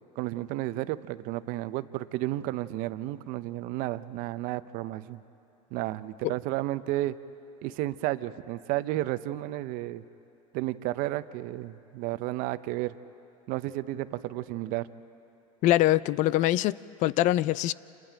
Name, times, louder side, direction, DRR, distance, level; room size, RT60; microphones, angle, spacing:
voice 1, 0.2-5.2 5.7-7.2 7.6-10.0 10.5-13.0 13.5-14.9, right 16 dB, 55° right, 0.7 m, -32 dB
voice 2, 15.6-17.7, left 15 dB, 45° left, 0.4 m, -24 dB
29.5 x 28.0 x 3.5 m
supercardioid pair, 115°, 17 cm